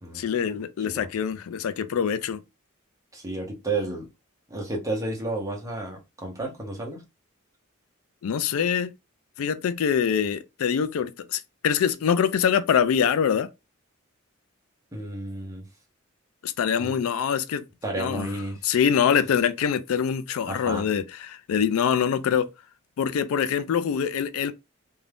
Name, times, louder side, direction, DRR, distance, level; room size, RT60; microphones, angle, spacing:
voice 1, 0.1-2.4 8.2-8.9 9.4-13.5 16.4-17.6 18.0-18.3 18.6-22.5 23.0-24.5, left 7 dB, 80° left, 0.4 m, -24 dB
voice 2, 3.1-4.1 4.5-7.0 14.9-15.6 16.8-16.9 17.8-18.6 20.5-20.8, right 2 dB, 15° right, 0.8 m, -32 dB
2.5 x 2.3 x 3.3 m
head